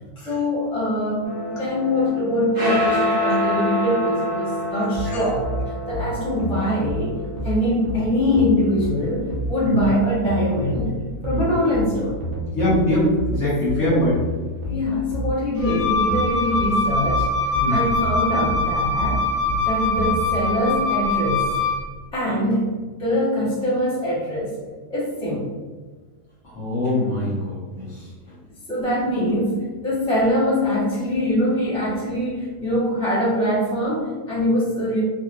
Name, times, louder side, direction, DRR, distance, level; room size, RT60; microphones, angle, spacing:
voice 1, 0.2-5.5 5.9-7.2 7.4-12.2 13.8-14.0 14.7-17.3 17.7-19.3 19.6-21.5 22.1-24.6 24.9-25.5 28.7-35.0, left 1 dB, 5° left, -9 dB, 0.5 m, -23 dB
sound 1, 1.2-9.8, left 1 dB, 30° right, 0.8 m, -27 dB
sound 2, 4.9-20.2, left 1 dB, 70° right, 1.0 m, -29 dB
voice 2, 12.5-14.1 17.6-17.8 26.4-28.0, left 1 dB, 50° left, -8 dB, 1.4 m, -23 dB
Wind instrument woodwind instrument, 15.6-21.9, left 2 dB, 75° left, 0.5 m, -23 dB
3.7 x 2.1 x 2.5 m, 1.4 s
omnidirectional pair, 1.7 m